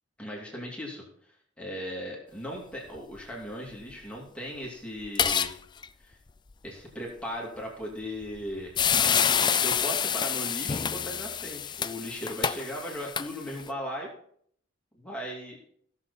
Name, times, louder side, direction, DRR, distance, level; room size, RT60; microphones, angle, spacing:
voice 1, 0.2-1.0 1.6-5.5 6.0-6.2 6.6-8.7 9.4-14.1 14.9-15.6, equal, 5° left, -3 dB, 2.7 m, -37 dB
sound 1, 5.0-5.5 5.8-5.9 8.2-8.4 8.8-13.7, left 8 dB, 25° left, 0.3 m, -27 dB
16.0 x 6.9 x 4.2 m, 0.63 s
head